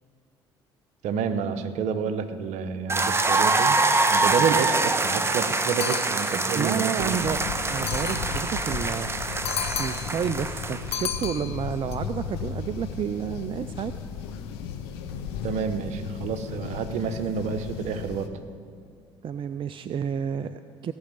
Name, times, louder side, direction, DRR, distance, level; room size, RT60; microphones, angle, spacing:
voice 1, 1.0-3.8 4.1-7.1 15.4-18.3, right 6 dB, 60° right, 10 dB, 0.9 m, -29 dB
sound 1, 2.9-11.0, right 3 dB, 20° right, 1.0 m, -25 dB
sound 2, 5.8-6.6 7.7-8.5 9.4-10.2 10.9-11.9, left 8 dB, 50° left, 0.9 m, -33 dB
voice 2, 6.6-7.4 7.7-9.5 9.8-13.9 19.2-20.9, right 8 dB, 40° right, 12 dB, 0.5 m, -30 dB
sound 3, 7.0-18.3, left 7 dB, 80° left, 0.9 m, -35 dB
16.5 x 6.3 x 8.9 m, 2.3 s
hypercardioid pair, 55°, 13 cm